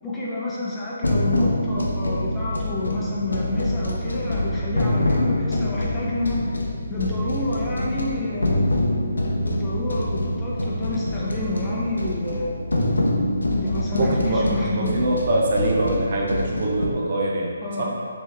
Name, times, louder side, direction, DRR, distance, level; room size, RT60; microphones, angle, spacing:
voice 1, 0.0-6.4 6.9-8.7 9.4-12.7 13.5-15.1 17.6-18.1, left 2 dB, 10° left, -8 dB, 0.7 m, -29 dB
sound 1, 1.0-16.8, left 1 dB, 85° left, 0.6 m, -25 dB
voice 2, 14.0-17.5 17.8-17.9, right 2 dB, 45° right, -2 dB, 0.6 m, -23 dB
4.3 x 3.0 x 3.4 m, 2.2 s
figure-of-eight pair, 150°, 0 cm